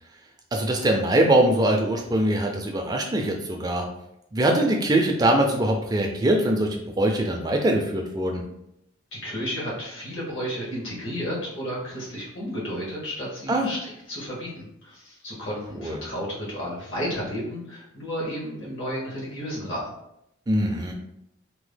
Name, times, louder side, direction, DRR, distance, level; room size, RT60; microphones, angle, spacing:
voice 1, 0.5-3.9 4.3-8.4 13.5-13.7 15.8-16.0 20.5-20.9, right 1 dB, 20° right, 2 dB, 0.3 m, -22 dB
voice 2, 9.1-19.9, equal, 75° left, -5 dB, 1.1 m, -32 dB
2.8 x 2.0 x 3.3 m, 0.82 s
head